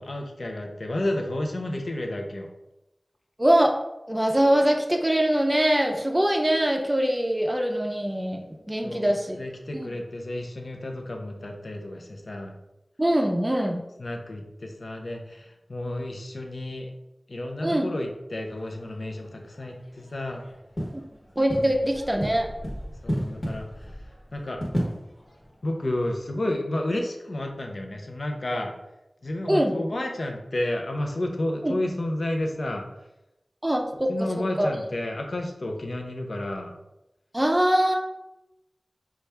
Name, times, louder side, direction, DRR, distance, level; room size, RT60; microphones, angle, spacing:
voice 1, 0.0-2.5 8.8-12.5 14.0-16.9 17.3-20.5 21.5-21.8 23.0-24.0 24.3-24.6 25.6-28.7 29.2-32.9 34.1-36.7, left 1 dB, 70° left, 3 dB, 0.5 m, -31 dB
voice 2, 3.4-3.8 4.1-8.4 8.7-9.4 9.7-9.9 13.0-13.8 17.6-17.9 21.4-22.5 29.5-29.8 31.6-31.8 33.6-34.1 34.6-34.7 37.3-38.0, right 1 dB, 15° right, 2 dB, 0.5 m, -23 dB
sound 1, 18.3-26.2, equal, 45° left, 1.1 m, -35 dB
4.1 x 2.4 x 3.3 m, 0.92 s
wide cardioid pair, 50°, 0 cm